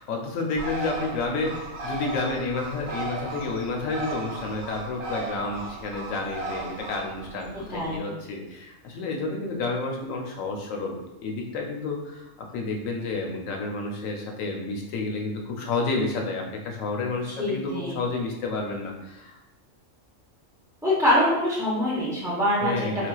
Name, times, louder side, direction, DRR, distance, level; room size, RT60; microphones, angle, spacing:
voice 1, 0.0-19.4 22.6-23.1, left 3 dB, 80° left, 2 dB, 1.0 m, -30 dB
Bird, 0.6-8.0, right 2 dB, 80° right, 1.1 m, -36 dB
voice 2, 7.7-8.1 17.4-18.0 20.8-23.1, left 1 dB, 5° right, -10 dB, 0.3 m, -24 dB
4.1 x 2.4 x 2.3 m, 0.94 s
omnidirectional pair, 1.4 m